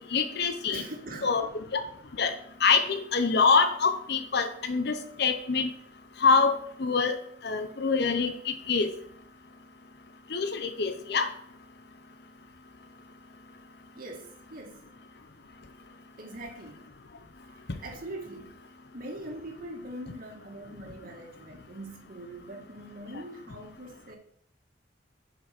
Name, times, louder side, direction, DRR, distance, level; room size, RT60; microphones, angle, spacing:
voice 1, 0.1-0.8 1.2-1.5 1.7-1.8 2.2-2.3 2.6-5.7 6.2-7.2 7.4-8.9 10.3-11.3, left 5 dB, 60° left, 0.8 m, -25 dB
voice 2, 0.7-1.4 14.0-14.9 16.2-16.9 17.5-18.6 18.9-24.2, right 1 dB, 50° right, 1.9 m, -42 dB
7.4 x 5.3 x 6.0 m
head